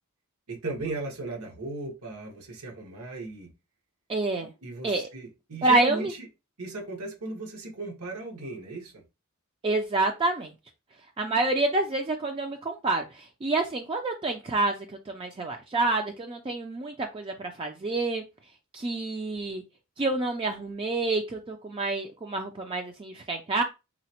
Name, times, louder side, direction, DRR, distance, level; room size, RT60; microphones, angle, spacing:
voice 1, 0.5-3.5 4.6-6.3 6.6-9.0, right 2 dB, 85° right, 1 dB, 1.1 m, -36 dB
voice 2, 4.1-4.5 4.8-5.1 5.6-6.1 9.6-10.5 11.2-18.2 18.7-19.6 20.0-23.6, right 2 dB, 25° right, 3 dB, 0.3 m, -28 dB
3.9 x 2.0 x 2.9 m, 0.26 s
head